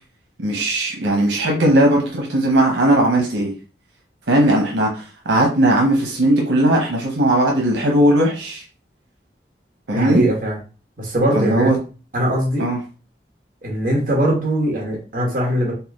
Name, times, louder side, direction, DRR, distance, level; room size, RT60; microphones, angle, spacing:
voice 1, 0.4-3.5 4.3-8.6 9.9-10.2 11.3-11.8 12.6-12.8, right 1 dB, 90° right, 0 dB, 0.9 m, -18 dB
voice 2, 9.9-10.6 11.0-11.7 12.1-12.7 13.6-15.7, right 1 dB, 50° right, -2 dB, 1.4 m, -20 dB
4.2 x 2.2 x 3.6 m, 0.35 s
head